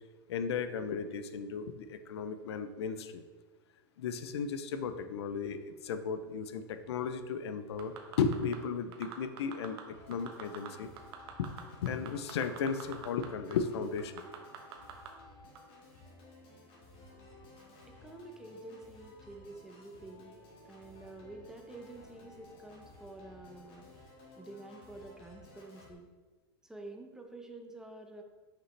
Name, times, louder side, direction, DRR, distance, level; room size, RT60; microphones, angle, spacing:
voice 1, 0.3-3.2 4.0-9.8 10.1-10.9 11.4-11.5 11.8-14.1, left 6 dB, 80° left, 10 dB, 0.5 m, -35 dB
sound 1, 7.8-8.6 8.9-9.8 10.1-10.7 11.0-13.3 13.5-13.6 14.0-15.1 15.5-15.6, right 11 dB, 70° right, 1.0 m, -44 dB
Organ, 9.9-25.9, left 2 dB, 40° left, 1.7 m, -56 dB
voice 2, 17.9-20.3 20.6-23.9 24.4-26.1 26.6-28.2, right 2 dB, 5° right, 3 dB, 0.7 m, -49 dB
6.1 x 4.9 x 3.3 m, 1.3 s
supercardioid pair, 130°, 14 cm